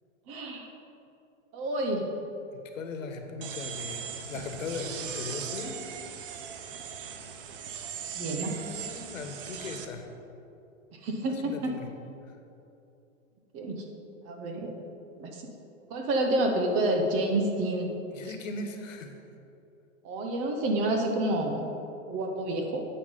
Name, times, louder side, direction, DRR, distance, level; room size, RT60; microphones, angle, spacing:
voice 1, 0.3-0.7 1.5-2.1 8.2-8.5 10.9-11.7 13.5-13.8 14.2-14.8 15.2-15.5 15.9-17.9 20.0-21.7 22.1-22.9, right 1 dB, 20° right, 3 dB, 0.6 m, -29 dB
voice 2, 2.5-5.8 8.1-10.1 11.3-11.9 18.1-19.2, left 3 dB, 85° left, 5 dB, 1.5 m, -39 dB
sound 1, 3.4-9.9, right 8 dB, 45° right, 0.9 m, -39 dB
9.0 x 8.0 x 5.4 m, 2.8 s
hypercardioid pair, 160°, 38 cm